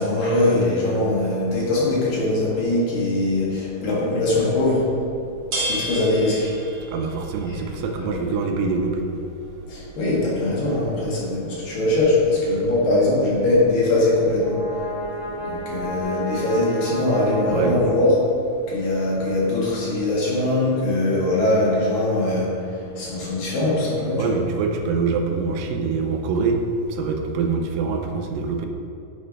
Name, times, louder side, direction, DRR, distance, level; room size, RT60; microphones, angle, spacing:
voice 1, 0.0-4.9 5.5-6.7 7.5-7.6 8.0-8.3 9.7-18.2 18.7-24.4, left 2 dB, 75° left, -7 dB, 3.5 m, -22 dB
sound 1, 4.5-16.0, right 1 dB, 50° right, 2.5 m, -37 dB
voice 2, 6.9-9.1 12.5-12.7 17.5-17.8 24.2-26.6 26.9-28.7, right 4 dB, 85° right, 3 dB, 2.4 m, -25 dB
Brass instrument, 14.1-18.5, right 1 dB, 55° left, 1.9 m, -32 dB
8.9 x 3.3 x 5.2 m, 2.7 s
omnidirectional pair, 4.0 m